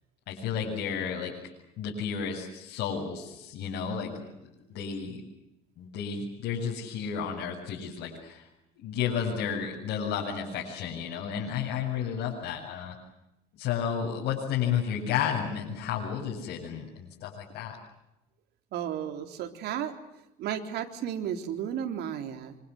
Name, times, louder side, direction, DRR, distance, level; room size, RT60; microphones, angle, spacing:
voice 1, 0.3-1.3 1.8-4.3 4.7-5.2 5.8-8.5 8.8-13.0 13.6-17.8, left 7 dB, 80° left, -3 dB, 7.7 m, -32 dB
voice 2, 18.7-19.9 20.4-22.6, right 9 dB, 75° right, 6 dB, 3.7 m, -33 dB
27.0 x 26.5 x 7.8 m, 0.89 s
cardioid pair, 110°, 17 cm